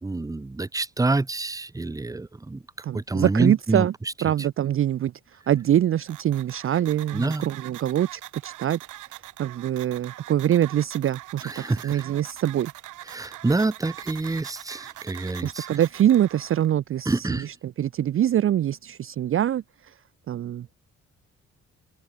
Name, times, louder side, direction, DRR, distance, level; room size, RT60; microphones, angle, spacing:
voice 1, 0.0-2.6 2.9-3.9 7.1-7.4 11.4-12.0 13.1-15.7 17.1-17.5, right 2 dB, 10° right, 0.9 m, -27 dB
voice 2, 2.8-3.9 4.2-5.1 5.5-8.8 9.4-12.7 15.4-19.6 20.3-20.7, right 11 dB, 45° right, 0.5 m, -24 dB
sound 1, 6.1-16.7, right 16 dB, 90° right, 4.8 m, -43 dB
cardioid pair, 90°, 30 cm